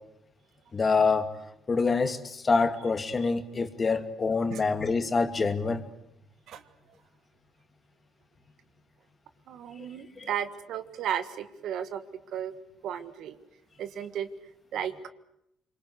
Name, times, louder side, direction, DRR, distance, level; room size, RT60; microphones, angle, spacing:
voice 1, 0.7-1.3 1.7-5.8 10.2-10.3, left 4 dB, 35° left, 8 dB, 2.4 m, -26 dB
voice 2, 9.5-12.0 12.3-12.5 12.8-13.4 13.8-14.3 14.7-14.9, right 9 dB, 70° right, 11 dB, 1.6 m, -34 dB
25.0 x 23.5 x 8.1 m, 0.79 s
supercardioid pair, 75°, 0 cm